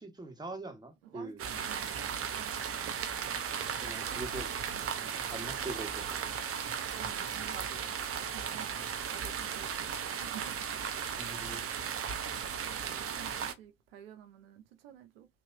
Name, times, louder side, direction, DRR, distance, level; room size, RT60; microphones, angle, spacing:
voice 1, 0.0-1.4 3.8-4.6 4.9-6.2 11.2-11.7, right 2 dB, 15° right, 1.5 m, -43 dB
voice 2, 1.0-2.8 4.0-4.3 4.7-4.8 6.9-8.0 8.3-11.1 12.6-15.3, right 9 dB, 85° right, 0.5 m, -51 dB
sound 1, 1.4-13.5, right 7 dB, 50° right, 0.8 m, -36 dB
3.3 x 2.8 x 2.6 m
hypercardioid pair, 40°, 29 cm